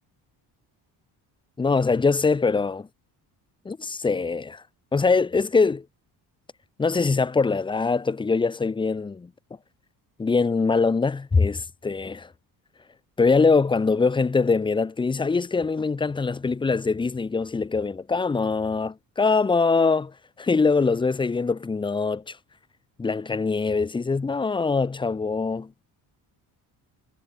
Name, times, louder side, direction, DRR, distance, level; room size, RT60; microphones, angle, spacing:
voice 1, 1.6-2.9 3.6-4.6 4.9-5.8 6.8-9.3 10.2-12.3 13.2-22.4 23.0-25.7, left 4 dB, 10° left, 0.7 m, -23 dB
cardioid pair, 170°, 39 cm